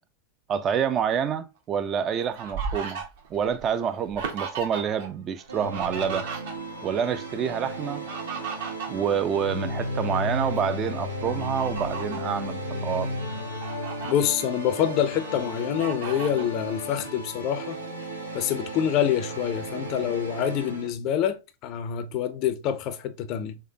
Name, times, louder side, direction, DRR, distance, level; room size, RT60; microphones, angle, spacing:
voice 1, 0.5-3.0 3.3-6.3 6.8-8.0 8.9-13.1, right 7 dB, 30° right, 0.4 m, -27 dB
Fowl, 1.8-5.1 5.4-6.9 7.8-9.9 10.4-10.6 11.2-12.3 12.9-13.0 13.4-14.1 14.7-15.4 15.8-16.5, right 6 dB, 55° right, 0.9 m, -36 dB
sound 1, 5.5-20.9, equal, 85° right, 0.9 m, -34 dB
voice 2, 14.0-17.8 18.3-23.6, left 9 dB, 40° left, 0.4 m, -26 dB
3.8 x 3.1 x 2.7 m
figure-of-eight pair, 90°, 0 cm